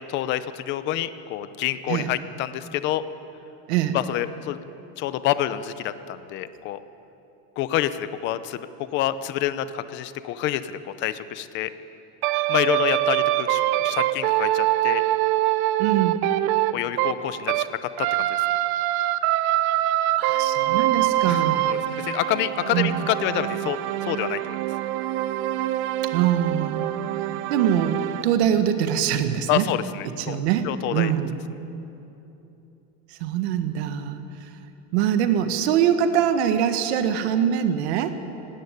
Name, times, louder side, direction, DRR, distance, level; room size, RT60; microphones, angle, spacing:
voice 1, 0.1-3.0 3.9-4.6 5.0-6.8 7.6-8.6 8.9-11.7 12.5-15.0 16.7-17.8 18.2-18.3 21.2-24.6 29.5-30.4 30.6-31.1, left 12 dB, 35° left, 13 dB, 0.7 m, -27 dB
sound 1, 12.2-17.7 18.0-28.2, right 14 dB, 35° right, 0.6 m, -24 dB
voice 2, 15.8-16.2 20.2-21.7 22.7-23.0 26.1-26.8 27.5-29.7 30.0-31.3 33.1-34.5 34.9-38.1, right 9 dB, 70° right, 8 dB, 1.6 m, -23 dB
18.0 x 17.5 x 9.8 m, 2.9 s
cardioid pair, 180°, 34 cm